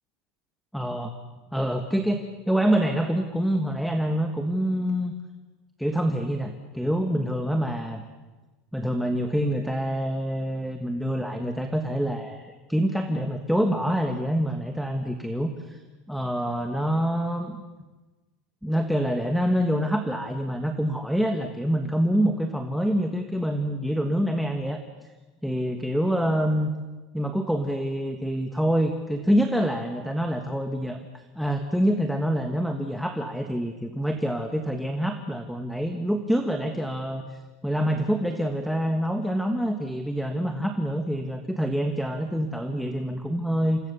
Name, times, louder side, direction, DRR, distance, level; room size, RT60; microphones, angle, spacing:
voice 1, 0.7-1.1 1.5-5.1 5.8-8.0 8.7-15.8 16.1-17.6 18.6-24.8 25.4-26.7 27.1-37.4 37.6-43.8, equal, ahead, 4 dB, 1.3 m, -26 dB
29.0 x 26.5 x 6.9 m, 1.2 s
supercardioid pair, 170°, 0 cm